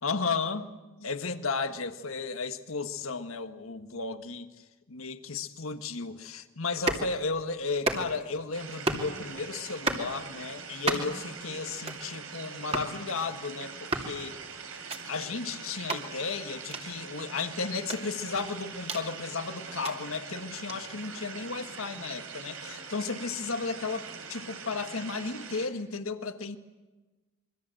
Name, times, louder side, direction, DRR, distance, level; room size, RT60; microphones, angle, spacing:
voice 1, 0.0-14.4 15.1-26.6, left 4 dB, 75° left, 9 dB, 1.6 m, -34 dB
sound 1, 6.7-7.1 7.7-8.3 8.7-9.1 9.7-10.1 10.7-11.2 11.7-12.1 12.7-12.9 13.7-14.1 14.7-15.0 15.7-16.0 16.7-16.8 17.7-19.1 19.7-19.9 20.7-20.8, right 2 dB, 30° right, 2.8 m, -33 dB
sound 2, 8.5-25.7, right 5 dB, 85° right, 3.7 m, -43 dB
26.5 x 24.0 x 7.8 m, 1.2 s
head